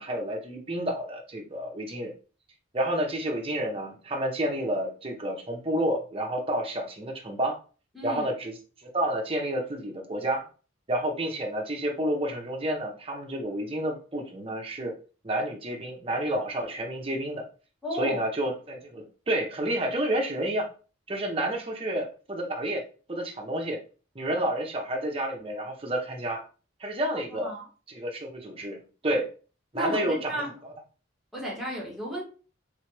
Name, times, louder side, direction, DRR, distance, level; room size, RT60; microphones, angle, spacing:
voice 1, 0.0-2.1 2.7-7.6 8.0-8.5 8.8-10.5 10.9-15.0 15.2-17.5 17.9-20.7 21.1-23.8 24.1-26.4 26.8-27.5 27.9-29.3 29.7-30.7, right 1 dB, 30° right, 0.7 m, -30 dB
voice 2, 7.9-8.3 17.8-18.2 27.4-27.7 29.7-30.5 31.3-32.2, equal, ahead, 1.4 m, -33 dB
3.6 x 3.2 x 3.2 m
head